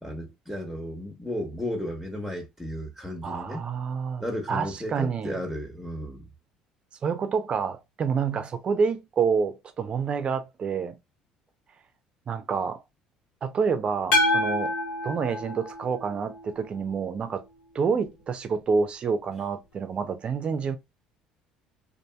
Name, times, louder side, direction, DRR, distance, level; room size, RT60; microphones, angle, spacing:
voice 1, 0.0-3.6 4.2-6.3, equal, ahead, 1.0 m, -34 dB
voice 2, 3.2-4.2 4.5-5.4 7.0-11.0 12.3-12.8 13.4-14.7 15.0-17.4 17.7-20.8, right 5 dB, 40° right, 0.6 m, -28 dB
sound 1, 14.1-16.4, left 2 dB, 75° left, 1.5 m, -26 dB
2.7 x 2.6 x 2.2 m
supercardioid pair, 75°, 3 cm